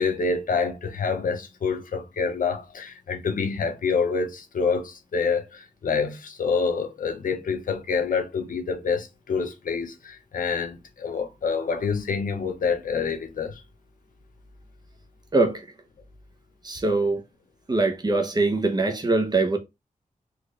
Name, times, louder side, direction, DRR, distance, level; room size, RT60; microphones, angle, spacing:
voice 1, 0.0-13.6, left 5 dB, 75° left, 0.7 m, -27 dB
voice 2, 15.3-15.6 16.6-17.2 17.7-19.6, right 2 dB, 30° right, 0.8 m, -22 dB
4.0 x 2.4 x 3.1 m
wide cardioid pair, 120°, 14 cm